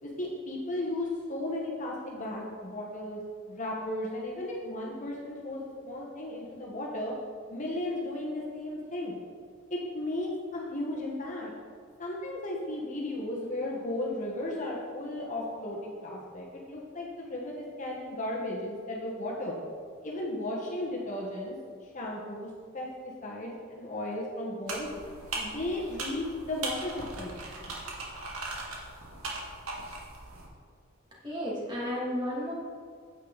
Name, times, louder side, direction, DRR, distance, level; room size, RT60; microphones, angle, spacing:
voice 1, 0.0-3.2 3.5-7.1 7.5-9.2 9.7-11.5 12.0-19.5 20.0-21.5 21.8-24.9 25.3-27.3, left 1 dB, 35° left, -3 dB, 1.3 m, -35 dB
sound 1, 24.7-30.5, right 2 dB, 85° right, 1.9 m, -39 dB
voice 2, 31.2-32.5, equal, 20° right, -6 dB, 2.6 m, -32 dB
9.2 x 8.5 x 4.1 m, 2.1 s
head